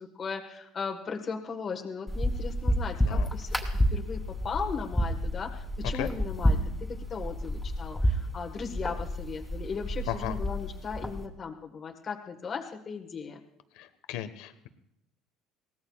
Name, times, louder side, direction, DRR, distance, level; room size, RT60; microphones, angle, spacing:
voice 1, 0.0-6.6 6.9-13.4, left 5 dB, 35° left, 3 dB, 1.5 m, -37 dB
sound 1, 2.1-11.2, equal, 5° left, 2.7 m, -30 dB
voice 2, 10.1-10.4 13.8-14.7, left 12 dB, 80° left, 10 dB, 1.3 m, -36 dB
23.0 x 18.5 x 2.4 m, 0.81 s
cardioid pair, 110°, 0 cm